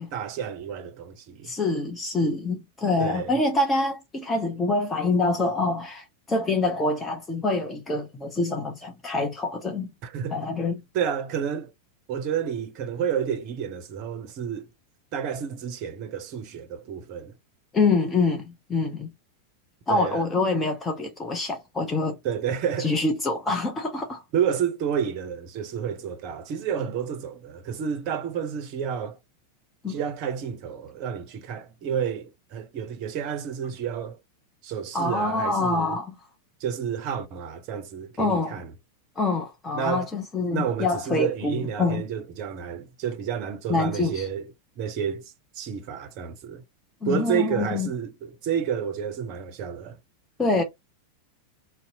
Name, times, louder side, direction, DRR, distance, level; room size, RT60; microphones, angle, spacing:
voice 1, 0.1-1.5 3.0-3.4 10.0-10.5 10.9-11.7 12.1-14.7 15.1-17.3 19.9-20.3 22.2-22.9 24.3-29.2 29.9-34.2 34.6-36.0 36.6-38.7 39.7-40.1 40.5-44.5 44.8-46.6 47.1-50.0, right 8 dB, 40° right, 0.5 m, -30 dB
voice 2, 1.4-9.9 10.3-10.8 17.7-19.1 19.9-22.2 22.8-24.2 29.8-30.0 34.9-36.1 38.2-38.5 39.2-42.0 43.7-44.2 47.0-47.9 50.4-50.6, left 3 dB, 15° left, 0.5 m, -25 dB
2.6 x 2.0 x 2.7 m
figure-of-eight pair, 90°, 0 cm